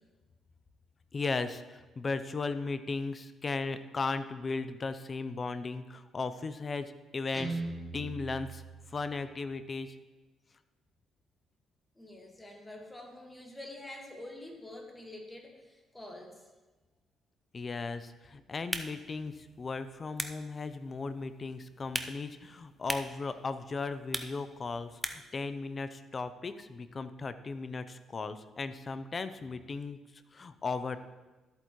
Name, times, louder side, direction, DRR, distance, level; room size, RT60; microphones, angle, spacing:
voice 1, 1.1-7.6 7.9-8.6 8.9-10.0 17.5-30.0 30.3-31.0, left 4 dB, 35° left, 11 dB, 0.6 m, -36 dB
Guitar, 7.3-9.4, right 3 dB, 20° right, 1.6 m, -40 dB
voice 2, 12.0-16.5, left 1 dB, 15° left, 2 dB, 1.8 m, -47 dB
sound 1, 18.5-25.4, right 1 dB, 5° right, 0.7 m, -42 dB
13.5 x 8.2 x 3.1 m, 1.2 s
cardioid pair, 90°, 0 cm